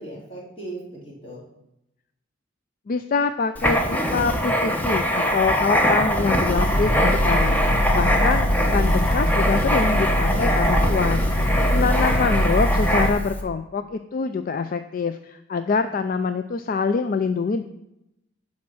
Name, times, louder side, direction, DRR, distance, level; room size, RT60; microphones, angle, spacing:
voice 1, 0.0-1.4 11.4-12.1, right 1 dB, 30° left, -5 dB, 3.2 m, -37 dB
voice 2, 2.9-7.6 7.9-11.2 11.7-17.6, left 5 dB, 45° left, 9 dB, 0.4 m, -25 dB
Writing, 3.6-13.4, equal, 10° left, 0.9 m, -23 dB
sound 1, 6.6-13.1, equal, 85° left, 1.3 m, -22 dB
10.5 x 4.3 x 6.2 m, 0.86 s
head